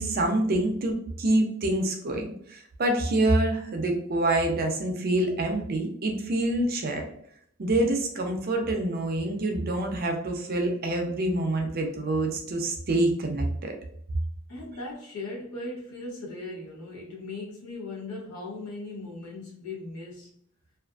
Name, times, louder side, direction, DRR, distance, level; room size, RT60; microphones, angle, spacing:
voice 1, 0.0-7.1 7.6-13.7, right 1 dB, 40° right, 3 dB, 0.5 m, -26 dB
voice 2, 14.5-20.3, left 2 dB, 90° left, -2 dB, 0.9 m, -38 dB
2.5 x 2.4 x 2.3 m, 0.65 s
head